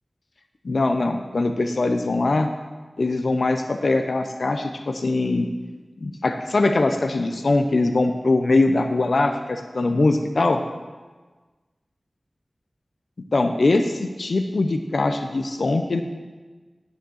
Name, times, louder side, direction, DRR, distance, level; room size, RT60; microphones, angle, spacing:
voice 1, 0.6-2.5 3.0-5.5 6.0-10.6 13.3-16.0, left 2 dB, 75° left, 6 dB, 0.6 m, -22 dB
9.5 x 6.6 x 6.3 m, 1.3 s
wide cardioid pair, 75°, 0 cm